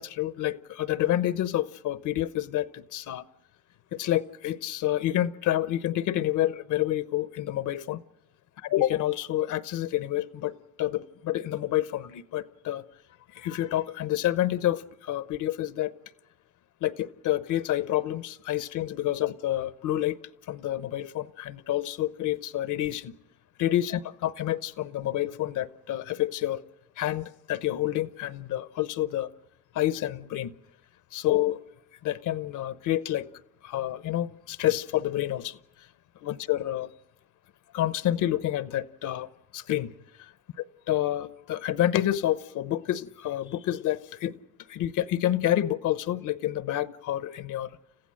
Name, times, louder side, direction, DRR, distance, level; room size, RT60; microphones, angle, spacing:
voice 1, 0.0-3.2 3.9-8.0 8.6-12.8 13.3-15.9 16.8-20.2 20.5-23.1 23.6-26.6 27.0-29.3 29.7-30.5 31.1-31.6 32.0-33.3 33.6-35.6 36.2-36.9 37.7-39.9 40.2-40.3 40.9-44.3 44.7-47.7, left 13 dB, 85° left, 0.9 m, -28 dB
30.0 x 15.5 x 7.7 m
cardioid pair, 90°, 30 cm